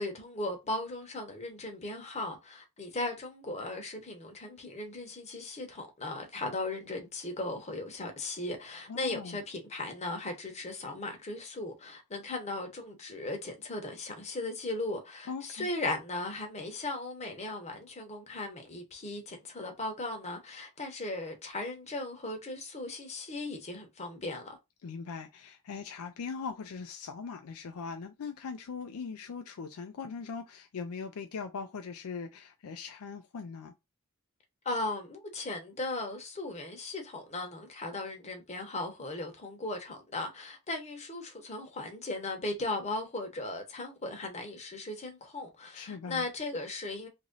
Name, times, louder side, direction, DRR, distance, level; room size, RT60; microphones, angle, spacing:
voice 1, 0.0-24.6 34.6-47.1, left 2 dB, 30° left, 0.9 m, -37 dB
voice 2, 8.9-9.4 15.3-15.7 24.8-33.7 45.7-46.3, left 5 dB, 75° left, 0.4 m, -40 dB
3.0 x 2.6 x 3.8 m
head